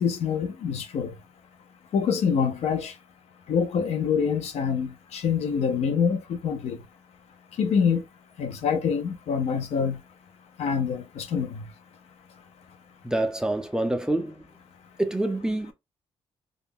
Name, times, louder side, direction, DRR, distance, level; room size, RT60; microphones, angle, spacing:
voice 1, 0.0-1.1 1.9-2.9 3.5-6.8 7.6-8.0 8.4-10.0 10.6-11.6, left 6 dB, 75° left, 0.5 m, -25 dB
voice 2, 13.0-14.4 15.0-15.7, right 1 dB, 5° right, 0.3 m, -26 dB
2.3 x 2.1 x 3.4 m
wide cardioid pair, 155°, 11 cm